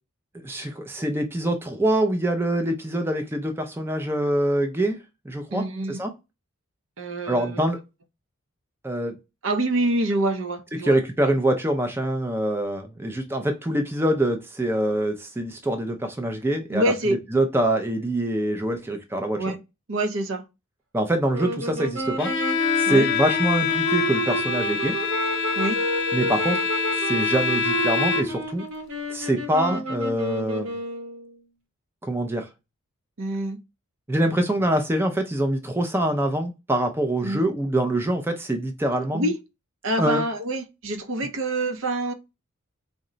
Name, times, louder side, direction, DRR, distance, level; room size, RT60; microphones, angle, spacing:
voice 1, 0.4-5.0 5.3-6.1 7.3-7.8 8.8-9.1 10.8-19.4 20.9-22.3 22.8-25.0 26.1-26.6 27.0-28.6 29.1-30.8 32.0-32.5 34.1-39.3 40.0-40.2, right 1 dB, 10° right, 0.4 m, -24 dB
voice 2, 5.5-6.0 7.0-7.7 9.4-11.0 16.7-17.2 19.4-19.6 19.9-20.4 22.9-23.1 25.6-25.8 29.7-29.8 33.2-33.6 37.2-37.4 39.1-39.4 39.8-42.1, right 1 dB, 65° right, 0.6 m, -26 dB
sound 1, 21.3-31.3, right 2 dB, 85° right, 1.2 m, -31 dB
Bowed string instrument, 22.2-28.5, left 5 dB, 55° left, 0.5 m, -25 dB
3.7 x 2.1 x 3.8 m
head